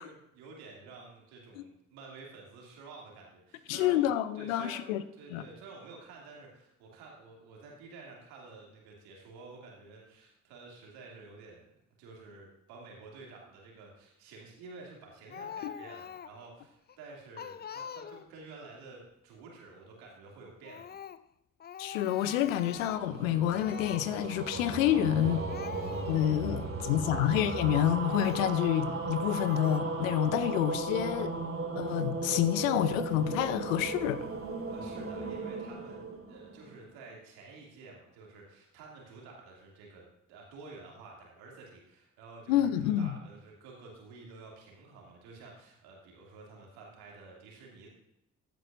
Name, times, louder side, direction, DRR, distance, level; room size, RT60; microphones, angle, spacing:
voice 1, 0.0-4.9 5.1-11.6 12.0-21.0 26.4-27.2 34.7-47.9, right 3 dB, 75° right, 2.7 m, -51 dB
voice 2, 3.7-5.0 5.3-5.4 15.6-15.7 21.8-25.4 26.1-31.3 31.8-34.2 42.5-43.2, left 11 dB, 80° left, 0.6 m, -28 dB
Speech, 15.3-16.5 16.9-17.0 17.4-18.4 20.6-21.3 21.6-23.2 23.5-24.1 25.0-25.1 25.3-26.4 27.0-27.1 28.1-28.5 29.2-29.8, left 8 dB, 25° left, 0.4 m, -44 dB
sound 1, 22.5-36.9, right 3 dB, 35° right, 2.4 m, -36 dB
14.5 x 9.3 x 2.6 m
hypercardioid pair, 40°, 38 cm